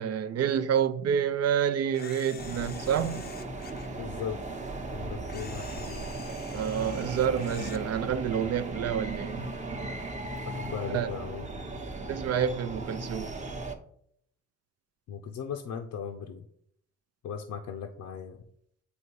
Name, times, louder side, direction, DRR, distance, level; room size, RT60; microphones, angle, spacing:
voice 1, 0.0-3.3 6.5-9.5 10.9-11.1 12.1-13.4, right 8 dB, 55° right, 0.5 m, -28 dB
Camera, 1.9-3.9 5.3-7.8, left 6 dB, 30° left, 0.6 m, -47 dB
sound 1, 2.4-13.7, right 2 dB, 25° right, 0.9 m, -37 dB
voice 2, 4.0-4.4 4.9-6.1 10.4-11.8 15.1-16.4 17.2-18.4, left 7 dB, 70° left, 0.7 m, -38 dB
8.1 x 2.8 x 4.6 m
cardioid pair, 90°, 30 cm